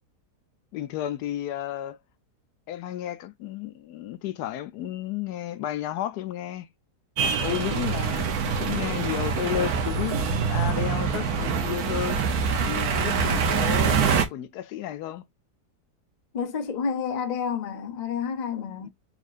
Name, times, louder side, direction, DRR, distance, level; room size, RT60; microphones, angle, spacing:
voice 1, 0.7-2.0 2.7-6.7 7.2-12.2 12.6-15.2 18.8-18.9, left 12 dB, 75° left, 1.1 m, -32 dB
sound 1, 7.2-14.2, right 6 dB, 70° right, 1.2 m, -25 dB
voice 2, 16.3-18.9, left 6 dB, 50° left, 0.5 m, -29 dB
4.2 x 3.6 x 2.5 m
omnidirectional pair, 1.8 m